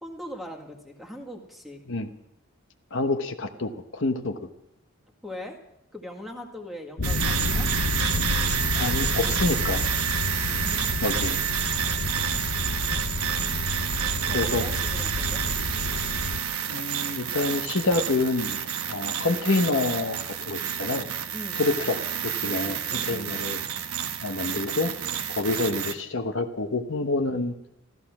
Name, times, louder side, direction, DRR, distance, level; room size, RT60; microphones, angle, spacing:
voice 1, 0.0-1.8 5.2-5.6 5.9-7.7 10.4-11.0 14.3-15.4 21.3-21.7 22.5-23.4, equal, ahead, 1 dB, 1.8 m, -40 dB
voice 2, 2.9-4.4 8.7-9.8 11.0-11.4 14.3-14.6 16.7-18.6 18.9-21.1 21.6-22.0 22.2-22.8 23.1-23.6 24.2-24.9 25.3-27.5, left 2 dB, 55° left, 5 dB, 1.0 m, -27 dB
sound 1, 7.0-16.4, left 2 dB, 85° left, 0.9 m, -30 dB
sound 2, 7.0-25.9, right 8 dB, 80° right, 1.2 m, -29 dB
14.0 x 14.0 x 6.0 m, 0.80 s
head